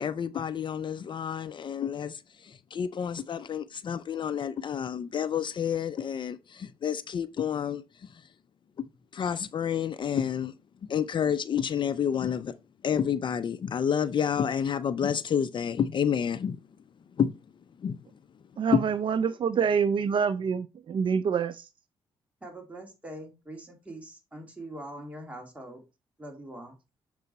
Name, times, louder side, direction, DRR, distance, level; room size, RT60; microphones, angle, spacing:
voice 1, 0.0-7.8 9.1-10.5 10.9-12.5 12.8-16.6 17.2-17.3 17.8-18.0 18.7-18.9, left 8 dB, 50° left, 0.5 m, -29 dB
voice 2, 18.6-21.6, right 6 dB, 55° right, 0.4 m, -26 dB
voice 3, 22.4-25.8 26.2-26.8, right 1 dB, 15° right, 2.6 m, -43 dB
6.8 x 4.7 x 4.0 m
cardioid pair, 85°, 10 cm